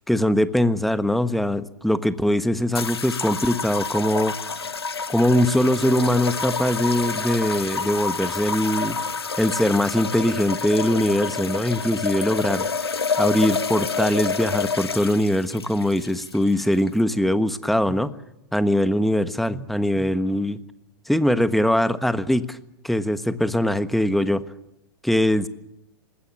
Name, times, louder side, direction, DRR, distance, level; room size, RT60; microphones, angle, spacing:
voice 1, 0.1-4.5 5.1-9.0 9.4-12.7 13.2-18.1 18.5-20.6 21.1-22.6 22.8-24.4 25.0-25.5, left 1 dB, ahead, 12 dB, 1.3 m, -22 dB
sound 1, 2.7-17.0, left 5 dB, 85° left, 1.3 m, -28 dB
26.5 x 20.5 x 7.6 m, 0.84 s
hypercardioid pair, 100°, 13 cm